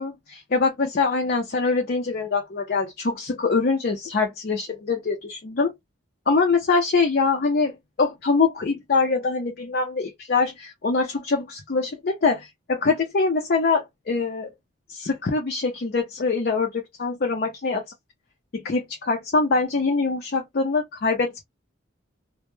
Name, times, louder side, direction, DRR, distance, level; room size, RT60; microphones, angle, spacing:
voice 1, 0.0-5.7 6.3-7.7 8.0-14.5 14.9-17.8 18.5-21.4, left 4 dB, 50° left, 0.5 m, -24 dB
2.1 x 2.1 x 3.0 m
head